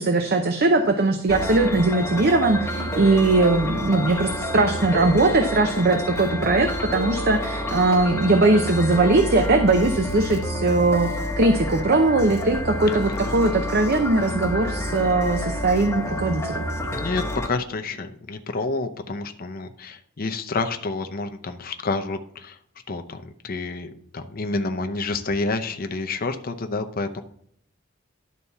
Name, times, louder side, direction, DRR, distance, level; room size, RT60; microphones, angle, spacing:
voice 1, 0.0-11.1 11.4-16.6, right 2 dB, 50° right, 6 dB, 0.7 m, -20 dB
sound 1, 1.3-17.5, left 1 dB, 15° left, 0.9 m, -29 dB
voice 2, 12.9-13.4 16.9-22.6 22.9-27.2, left 3 dB, 45° left, 7 dB, 0.7 m, -29 dB
11.0 x 4.2 x 5.6 m, 0.67 s
head